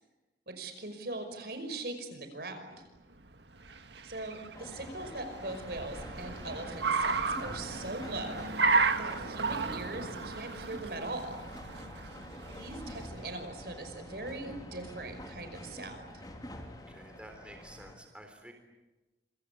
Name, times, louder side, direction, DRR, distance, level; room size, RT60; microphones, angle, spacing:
voice 1, 0.5-2.8 4.0-8.7 9.0-11.4 12.6-16.3, right 2 dB, 60° right, 7 dB, 5.6 m, -41 dB
Car, 3.3-13.5, right 4 dB, 80° right, 1.8 m, -34 dB
sound 1, 4.5-18.0, left 1 dB, 20° left, 3.6 m, -47 dB
voice 2, 16.9-18.5, right 1 dB, 5° right, 4 dB, 3.7 m, -51 dB
27.0 x 25.5 x 8.5 m, 1.1 s
head